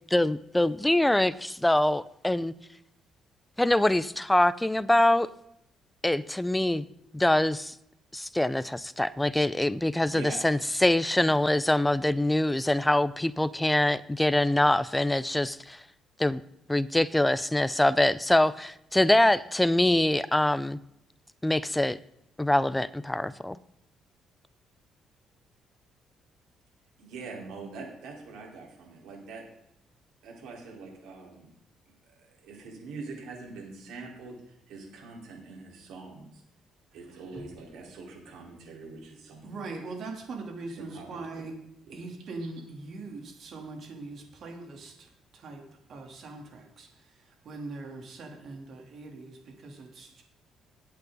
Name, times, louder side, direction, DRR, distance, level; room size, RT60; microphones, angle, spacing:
voice 1, 0.1-2.5 3.6-5.3 6.0-6.8 7.1-7.7 8.1-15.8 16.2-16.4 16.7-20.8 21.4-22.0 22.4-23.6, left 1 dB, 5° left, 0.5 m, -24 dB
voice 2, 10.1-10.5 27.0-29.4 30.2-31.5 32.4-36.4 36.9-39.8 40.8-41.2 41.8-42.0, right 3 dB, 85° right, 4.4 m, -43 dB
voice 3, 39.4-41.5 41.9-45.6 45.9-46.9 47.5-50.2, right 3 dB, 55° right, 3.4 m, -41 dB
20.0 x 8.3 x 4.1 m
cardioid pair, 115°, 0 cm